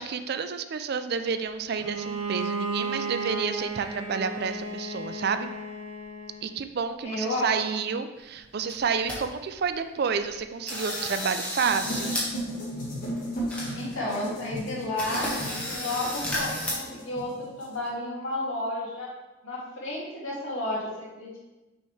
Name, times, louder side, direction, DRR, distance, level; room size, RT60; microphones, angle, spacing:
voice 1, 0.0-5.5 6.4-12.1, right 6 dB, 50° right, 9 dB, 0.4 m, -30 dB
Bowed string instrument, 1.8-6.5, right 3 dB, 90° right, 0.8 m, -33 dB
voice 2, 7.0-7.6 7.9-8.0 13.7-15.3 15.7-19.1 19.4-21.4, left 1 dB, 70° left, -5 dB, 2.1 m, -32 dB
sound 1, 8.4-8.5 8.7-9.2 9.6-9.7 10.2-10.4 10.7-12.3 12.6-12.7 13.2-13.3 13.5-14.1 14.5-14.6 15.0-16.7, left 1 dB, 5° left, 1.3 m, -32 dB
sound 2, 11.6-17.9, equal, 40° left, 1.8 m, -35 dB
6.4 x 5.4 x 3.3 m, 1.1 s
head